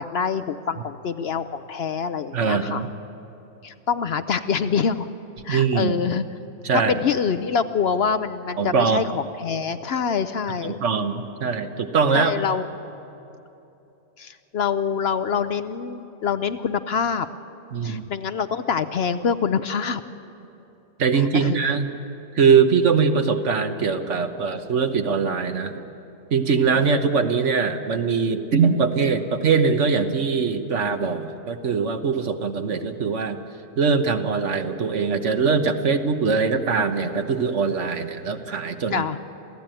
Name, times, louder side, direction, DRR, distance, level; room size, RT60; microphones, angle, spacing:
voice 1, 0.0-2.8 3.6-5.1 5.4-6.3 6.9-11.0 12.1-12.6 14.2-17.3 17.8-20.0 21.1-21.6 26.7-26.9 38.9-39.2, left 6 dB, 60° left, 11 dB, 0.8 m, -25 dB
voice 2, 2.3-2.9 5.5-5.9 6.6-7.0 8.6-9.1 10.6-12.4 17.7-18.1 21.0-21.9 22.3-25.8 26.3-33.4 33.8-39.0, right 5 dB, 65° right, 7 dB, 1.4 m, -22 dB
27.5 x 15.5 x 9.0 m, 2.9 s
omnidirectional pair, 1.3 m